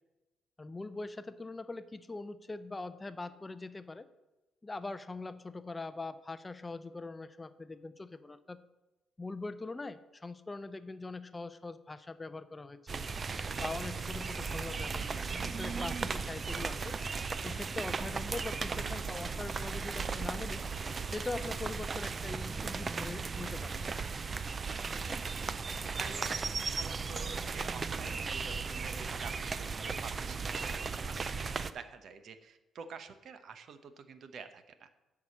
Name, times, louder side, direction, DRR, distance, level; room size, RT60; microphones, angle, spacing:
voice 1, 0.6-4.1 4.6-8.6 9.2-13.0 13.6-17.0 17.4-20.6 21.1-23.8, left 3 dB, 20° left, 13 dB, 0.5 m, -42 dB
sound 1, 12.9-31.7, right 5 dB, 35° right, 0.5 m, -36 dB
voice 2, 24.7-25.4 25.7-34.9, right 6 dB, 65° right, 10 dB, 0.9 m, -48 dB
11.0 x 4.8 x 7.2 m, 1.1 s
cardioid pair, 90°, 0 cm